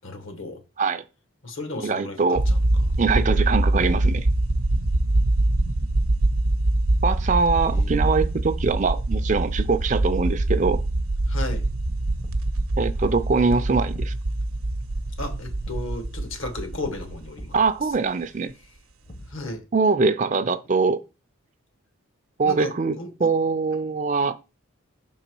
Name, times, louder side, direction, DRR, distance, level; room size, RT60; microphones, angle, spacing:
voice 1, 0.0-0.6 1.4-2.6 7.6-7.9 11.3-11.6 15.2-17.6 19.3-19.6 22.4-23.1, left 2 dB, 70° left, 1.3 m, -34 dB
voice 2, 1.8-2.5 3.0-4.3 7.0-10.8 12.8-14.1 17.5-18.5 19.7-21.0 22.4-24.3, right 4 dB, 35° right, 0.4 m, -23 dB
sound 1, 2.4-18.0, right 1 dB, 90° right, 0.8 m, -24 dB
Thump thud, 12.2-12.7 13.9-14.3 15.6-16.0 17.3-17.7 19.0-19.6, equal, 35° left, 0.7 m, -45 dB
5.9 x 3.9 x 4.5 m
head